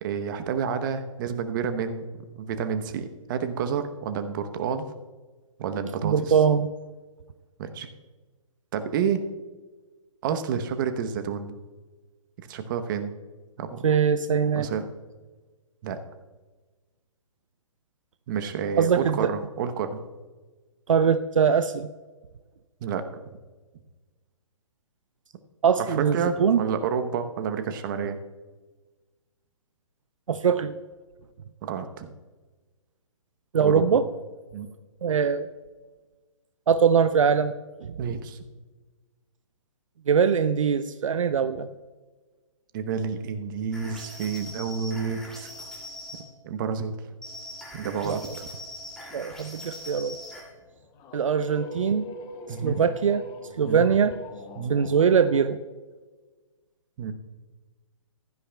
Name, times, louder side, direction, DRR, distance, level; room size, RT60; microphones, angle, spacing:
voice 1, 0.0-2.1 2.4-4.9 5.6-6.3 7.6-7.9 8.7-9.2 10.2-11.5 12.4-13.1 13.6-13.8 14.6-14.8 15.8-16.0 18.3-20.0 22.8-23.0 25.8-28.2 31.6-32.1 33.6-33.8 34.5-34.7 38.0-38.4 42.7-45.5 46.4-46.9 47.7-48.5 52.5-52.9 53.6-53.9 54.6-54.8 57.0-57.1, right 6 dB, 40° right, 9 dB, 0.9 m, -29 dB
voice 2, 6.0-6.7 13.8-14.7 18.8-19.3 20.9-21.9 25.6-26.6 30.3-30.7 33.5-34.1 35.0-35.5 36.7-37.5 37.8-38.0 40.1-41.7 48.0-48.4 49.1-50.2 51.1-52.1 52.6-53.2 53.6-54.2 54.7-55.6, right 6 dB, 70° right, 12 dB, 0.5 m, -22 dB
sound 1, 43.7-46.2 47.2-50.5, left 1 dB, 5° left, 2.6 m, -41 dB
sound 2, 50.6-55.5, left 2 dB, 25° left, 1.1 m, -42 dB
15.5 x 11.5 x 2.3 m, 1.3 s
figure-of-eight pair, 130°, 17 cm